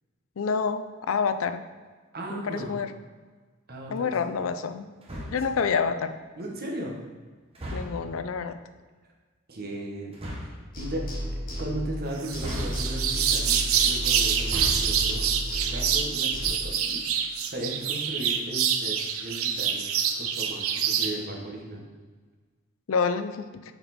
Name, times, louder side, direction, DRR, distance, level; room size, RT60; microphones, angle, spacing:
voice 1, 0.4-1.6 2.3-2.9 3.9-4.9 5.3-6.1 7.7-8.6 22.9-23.5, left 5 dB, 70° left, 10 dB, 0.4 m, -27 dB
voice 2, 2.1-2.8 3.7-4.3 5.5-5.6 6.4-7.0 9.5-10.1 10.4-11.0 11.6-15.2 15.7-17.0 17.5-19.8 20.1-21.8, right 1 dB, 50° right, 0 dB, 1.2 m, -36 dB
sound 1, 5.0-5.6 7.5-8.2 10.1-10.6 12.4-13.2 14.3-15.0, equal, 30° right, 1.1 m, -36 dB
sound 2, 10.7-12.1 12.3-16.5, equal, 45° left, 1.4 m, -33 dB
sound 3, 12.2-21.1, right 8 dB, 80° right, 0.6 m, -26 dB
6.8 x 4.3 x 4.2 m, 1.4 s
head